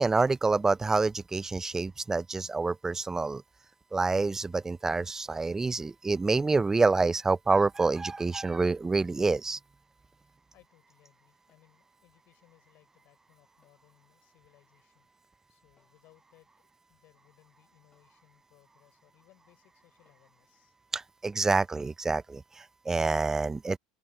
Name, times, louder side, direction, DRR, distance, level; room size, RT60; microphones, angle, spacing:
voice 1, 0.0-3.4 3.9-9.6 20.9-23.8, right 3 dB, 15° right, 0.5 m, -27 dB
sound 1, 7.1-7.4 9.3-9.6 11.5-11.8 13.6-13.9 15.8-16.1 17.9-18.2 20.1-20.4, left 4 dB, 20° left, 7.7 m, -74 dB
voice 2, 10.2-20.8, left 18 dB, 55° left, 6.4 m, -65 dB
hypercardioid pair, 95°, 3 cm